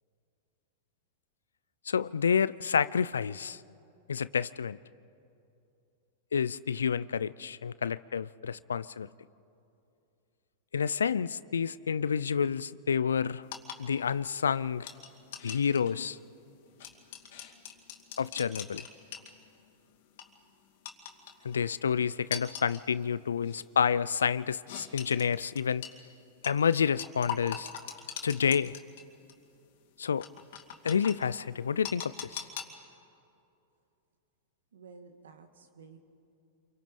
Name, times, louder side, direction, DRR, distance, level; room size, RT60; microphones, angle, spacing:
voice 1, 1.9-3.6 4.1-4.8 6.3-9.1 10.7-13.4 13.8-14.9 15.4-16.2 18.2-18.8 21.4-25.9 26.4-27.7 28.2-28.8 30.0-30.3 30.8-32.5, left 7 dB, 85° left, 0.4 m, -29 dB
sound 1, 13.4-19.7 20.0-20.3 20.9-21.6 22.3-22.8 23.4-23.6 24.7-25.9 26.4-29.0 29.3-29.4 30.2-31.1 31.8-32.6, left 9 dB, 65° left, 2.4 m, -41 dB
voice 2, 34.7-36.0, right 5 dB, 80° right, 2.1 m, -52 dB
28.0 x 24.0 x 5.4 m
hypercardioid pair, 105°, 0 cm